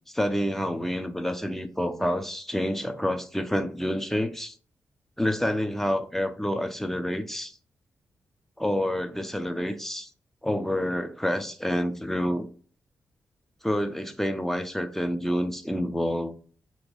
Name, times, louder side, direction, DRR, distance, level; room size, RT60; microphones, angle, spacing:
voice 1, 0.1-4.6 5.2-7.5 8.6-10.1 10.4-12.5 13.6-16.3, equal, 5° left, 0.6 m, -28 dB
2.9 x 2.6 x 3.9 m
supercardioid pair, 50°, 6 cm